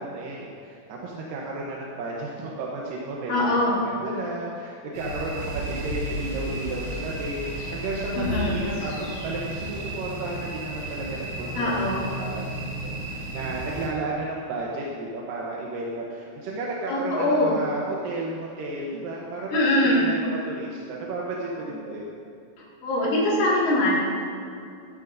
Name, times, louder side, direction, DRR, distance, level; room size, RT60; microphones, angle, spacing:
voice 1, 0.0-20.2 20.5-22.1, right 2 dB, 80° right, -3 dB, 2.7 m, -33 dB
voice 2, 3.3-3.8 8.2-8.7 11.6-12.1 16.9-17.6 19.5-20.1 22.8-24.0, left 1 dB, 75° left, -7 dB, 3.8 m, -22 dB
sound 1, 4.9-13.9, right 1 dB, 45° right, 3.6 m, -34 dB
sound 2, 5.3-11.9 12.1-12.2, right 2 dB, 30° left, 1.8 m, -40 dB
14.5 x 12.5 x 2.6 m, 2.4 s
omnidirectional pair, 3.9 m